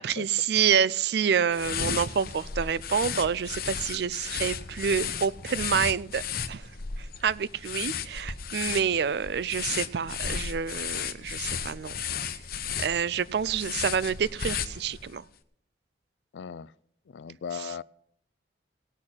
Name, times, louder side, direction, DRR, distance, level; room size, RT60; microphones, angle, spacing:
voice 1, 0.0-6.2 6.5-6.7 7.0-12.0 12.8-15.2 17.5-17.7, right 7 dB, 60° right, 20 dB, 0.4 m, -28 dB
sound 1, 1.5-15.2, left 7 dB, 50° left, 0.8 m, -34 dB
voice 2, 16.3-16.7 17.1-17.8, left 7 dB, 75° left, 20 dB, 0.4 m, -37 dB
17.5 x 6.5 x 5.8 m, 0.71 s
head